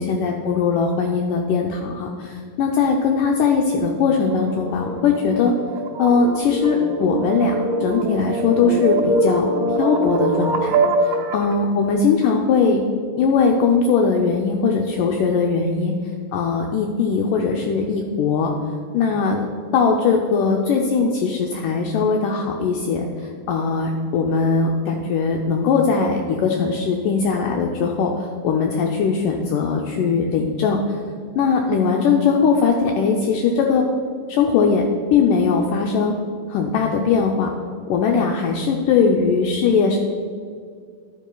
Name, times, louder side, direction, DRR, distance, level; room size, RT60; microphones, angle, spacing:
voice 1, 0.0-5.5 6.0-7.5 7.8-9.5 9.8-10.8 11.3-12.8 13.2-15.9 16.3-18.5 18.9-19.5 19.7-23.0 23.5-30.8 31.4-33.9 34.3-34.8 35.1-36.1 36.5-37.5 37.9-40.0, left 5 dB, 80° left, 2 dB, 1.9 m, -20 dB
sound 1, 4.2-11.5, right 2 dB, 85° right, 1.4 m, -23 dB
11.0 x 9.2 x 2.3 m, 2.1 s
omnidirectional pair, 4.2 m